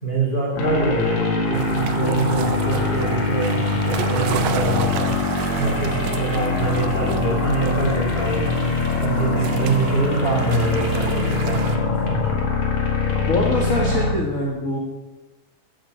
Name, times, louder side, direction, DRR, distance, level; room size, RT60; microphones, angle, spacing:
voice 1, 0.0-5.3 5.6-8.6 9.0-12.4, right 3 dB, 15° left, -3 dB, 3.2 m, -24 dB
sound 1, 0.6-14.1, left 3 dB, 80° left, 3.8 m, -23 dB
sound 2, 1.5-11.8, right 8 dB, 80° right, 2.4 m, -33 dB
voice 2, 13.3-14.8, left 1 dB, 45° left, -2 dB, 1.0 m, -23 dB
8.9 x 7.3 x 8.0 m, 1.1 s
omnidirectional pair, 3.9 m